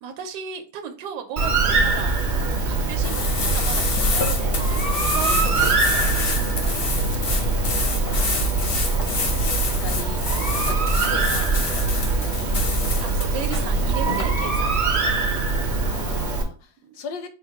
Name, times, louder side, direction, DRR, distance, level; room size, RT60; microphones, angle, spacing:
voice 1, 0.0-6.3 13.0-14.9 16.8-17.0, right 7 dB, 80° right, 1.1 m, -36 dB
Bird, 1.4-16.4, right 3 dB, 50° right, 0.6 m, -23 dB
sound 1, 3.0-14.2, left 3 dB, 55° left, 0.6 m, -27 dB
voice 2, 5.2-5.6 8.1-8.3 9.6-10.8 11.0-12.0 15.8-17.3, left 5 dB, 75° left, 1.2 m, -39 dB
4.1 x 2.1 x 4.5 m
omnidirectional pair, 1.8 m